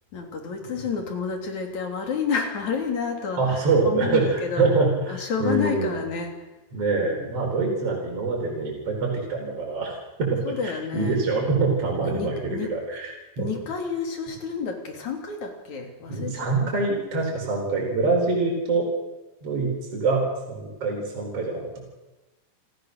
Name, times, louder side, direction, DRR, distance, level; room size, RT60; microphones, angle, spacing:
voice 1, 0.1-4.7 5.1-6.3 7.0-7.3 10.4-11.2 12.0-12.7 13.4-16.5, left 5 dB, 50° left, 3 dB, 4.2 m, -30 dB
voice 2, 3.4-5.9 6.7-13.5 16.1-18.9 19.4-21.8, right 3 dB, 40° right, -1 dB, 5.1 m, -25 dB
28.0 x 15.5 x 6.6 m, 1.1 s
omnidirectional pair, 4.3 m